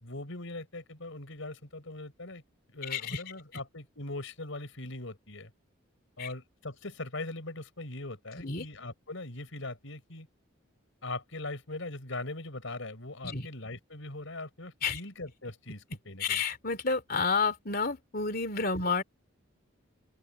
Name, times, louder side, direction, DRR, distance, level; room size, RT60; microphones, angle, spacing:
voice 1, 0.0-2.4 2.7-5.5 6.2-10.3 11.0-16.4 18.8-18.9, left 2 dB, 75° left, 4.4 m, -41 dB
voice 2, 2.9-3.2 6.2-6.3 8.4-8.7 13.2-13.5 14.8-15.0 16.2-19.0, left 4 dB, 45° left, 3.1 m, -30 dB
open air
head